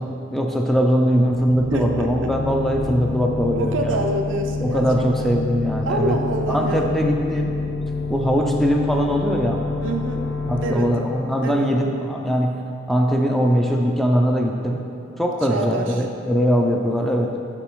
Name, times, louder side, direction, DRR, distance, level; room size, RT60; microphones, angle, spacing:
voice 1, 0.0-4.0 4.6-6.2 6.5-7.6 8.1-9.6 10.5-12.6 12.9-14.8 15.2-17.3, equal, ahead, 1 dB, 0.3 m, -21 dB
sound 1, 1.0-12.6, left 3 dB, 40° left, 0.7 m, -28 dB
voice 2, 1.7-2.3 3.5-5.5 5.8-7.0 9.8-10.2 10.6-10.9 11.4-11.7 15.5-15.9, right 2 dB, 70° right, 4 dB, 0.5 m, -26 dB
6.8 x 4.8 x 3.0 m, 2.5 s
head